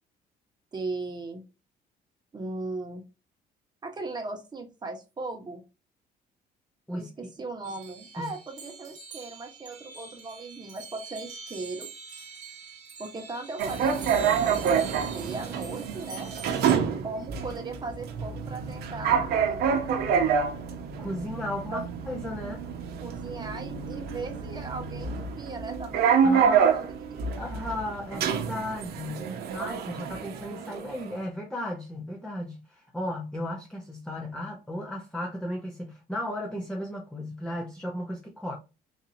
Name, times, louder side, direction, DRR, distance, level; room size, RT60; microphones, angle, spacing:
voice 1, 0.7-1.4 2.3-3.0 3.8-5.6 6.9-11.9 13.0-16.3 17.0-20.1 21.7-21.8 23.0-27.2, right 3 dB, 25° right, 1.1 m, -38 dB
sound 1, 7.6-16.8, right 4 dB, 50° right, 1.3 m, -45 dB
sound 2, 13.6-31.1, right 7 dB, 70° right, 0.7 m, -27 dB
voice 2, 21.0-22.6 26.2-26.8 27.4-38.5, left 1 dB, 5° left, 0.7 m, -35 dB
4.0 x 2.7 x 2.6 m
cardioid pair, 110°, 17 cm